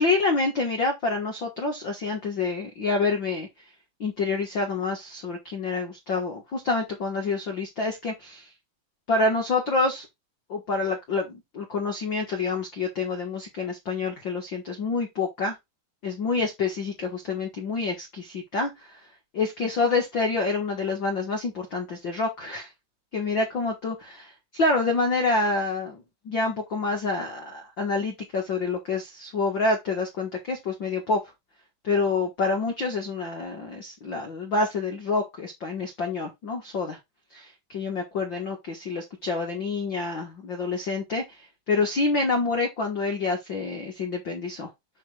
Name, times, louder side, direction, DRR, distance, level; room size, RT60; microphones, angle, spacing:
voice 1, 0.0-3.5 4.0-8.5 9.1-10.1 10.5-15.5 16.0-19.0 19.3-22.7 23.1-31.2 31.8-37.0 37.3-44.7, left 3 dB, 80° left, 1.0 m, -27 dB
9.1 x 3.3 x 4.9 m
omnidirectional pair, 4.7 m